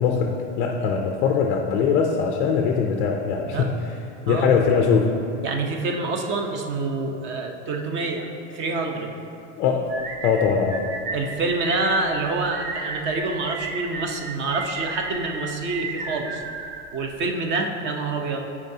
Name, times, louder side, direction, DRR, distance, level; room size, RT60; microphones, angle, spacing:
voice 1, 0.0-3.7 4.3-5.2 9.6-9.9 10.2-10.8, left 6 dB, 30° left, 2 dB, 0.4 m, -21 dB
voice 2, 4.3-4.6 5.4-9.1 11.1-16.4 16.9-18.5, right 3 dB, 30° right, 3 dB, 0.7 m, -27 dB
sound 1, 9.9-17.3, right 3 dB, 50° right, 1.0 m, -34 dB
14.5 x 4.8 x 2.7 m, 2.6 s
supercardioid pair, 155°, 35 cm